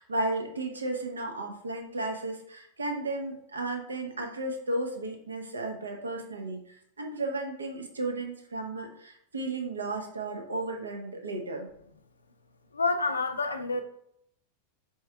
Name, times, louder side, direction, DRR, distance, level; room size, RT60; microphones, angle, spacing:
voice 1, 0.0-11.7, right 2 dB, 75° right, 3 dB, 0.8 m, -34 dB
voice 2, 12.7-13.8, left 3 dB, 75° left, 8 dB, 0.4 m, -28 dB
4.5 x 3.1 x 3.3 m, 0.70 s
figure-of-eight pair, 90°, 0 cm